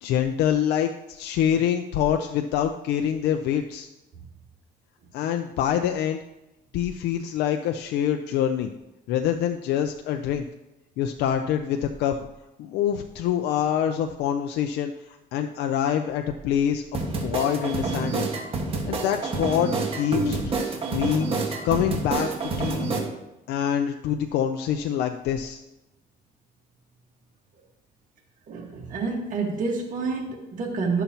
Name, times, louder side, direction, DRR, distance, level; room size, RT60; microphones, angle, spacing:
voice 1, 0.0-3.9 5.1-6.2 6.7-8.7 9.1-10.4 11.0-12.2 12.6-14.9 15.3-18.3 18.9-20.5 20.9-21.3 21.6-22.9 23.5-25.6, left 9 dB, 80° left, 6 dB, 0.5 m, -25 dB
sound 1, 16.9-23.0, right 3 dB, 35° right, 1.6 m, -27 dB
voice 2, 28.5-31.0, right 4 dB, 50° right, -1 dB, 1.7 m, -28 dB
11.5 x 6.8 x 2.9 m, 0.95 s
cardioid pair, 110°, 17 cm